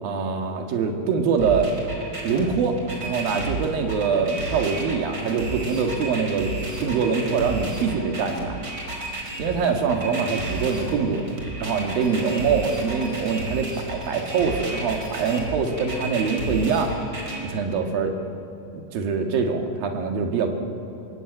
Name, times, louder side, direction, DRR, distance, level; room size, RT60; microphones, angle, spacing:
voice 1, 0.0-1.7 2.2-6.5 6.8-8.5 9.4-11.3 11.6-16.9 17.4-18.1 18.9-20.5, right 5 dB, 65° right, 3 dB, 3.5 m, -24 dB
sound 1, 1.4-17.4, right 2 dB, 30° right, 5.1 m, -32 dB
25.0 x 23.0 x 9.1 m, 2.8 s
omnidirectional pair, 4.7 m